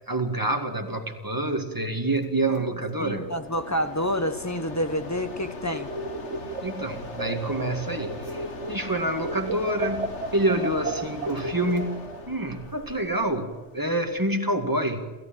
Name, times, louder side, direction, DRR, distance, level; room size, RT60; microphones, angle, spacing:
voice 1, 0.1-3.3 6.6-15.1, right 1 dB, 20° right, 4 dB, 2.2 m, -27 dB
Mechanisms, 2.1-14.5, left 3 dB, 85° left, 2.0 m, -41 dB
voice 2, 3.0-5.9, equal, 15° left, 8 dB, 1.3 m, -28 dB
sound 1, 5.6-8.9 9.2-12.2, right 2 dB, 85° right, 1.8 m, -34 dB
28.0 x 15.0 x 7.5 m, 1.3 s
omnidirectional pair, 1.1 m